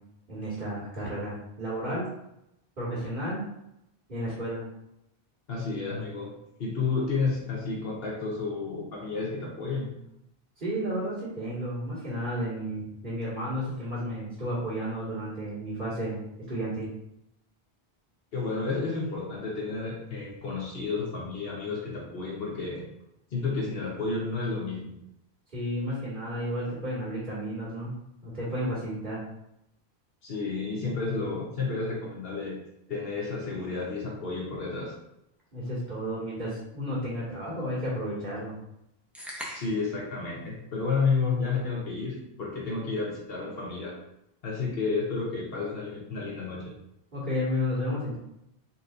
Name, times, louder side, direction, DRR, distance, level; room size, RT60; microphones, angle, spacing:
voice 1, 0.3-2.1 2.8-3.5 4.1-4.7 10.6-16.2 16.5-16.9 25.5-28.0 28.2-29.2 35.5-38.6 47.1-48.2, equal, 50° right, -10 dB, 1.9 m, -32 dB
voice 2, 5.5-6.3 6.6-10.0 18.3-22.8 23.3-24.9 30.2-32.6 32.9-34.9 39.5-44.0 44.4-46.7, left 4 dB, 65° left, -3 dB, 1.1 m, -31 dB
sound 1, 39.2-40.0, equal, ahead, 0.6 m, -40 dB
4.1 x 4.0 x 2.5 m, 0.82 s
omnidirectional pair, 1.1 m